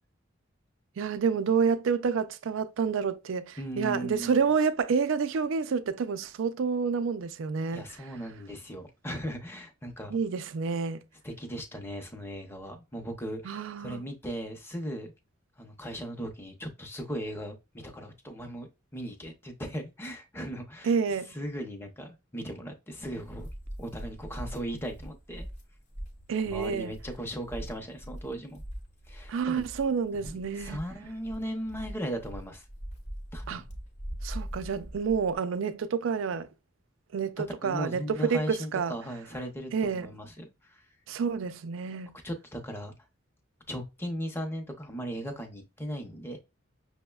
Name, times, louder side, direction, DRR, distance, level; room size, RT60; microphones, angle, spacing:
voice 1, 1.0-7.8 10.1-11.0 13.4-14.0 20.8-21.3 26.3-26.9 29.3-30.8 33.5-33.6 34.2-36.5 37.1-38.9 39.7-40.1 41.1-42.2, right 6 dB, 75° right, 0.4 m, -29 dB
voice 2, 3.6-4.4 7.7-10.2 11.2-13.5 13.8-15.1 15.6-20.9 21.3-23.5 23.8-25.5 26.4-28.6 29.1-29.6 30.1-32.6 33.3-33.6 37.6-40.8 42.2-42.9 43.7-46.4, equal, 10° left, 0.6 m, -37 dB
sound 1, 23.0-35.4, equal, 40° left, 0.9 m, -42 dB
6.0 x 2.1 x 2.2 m
head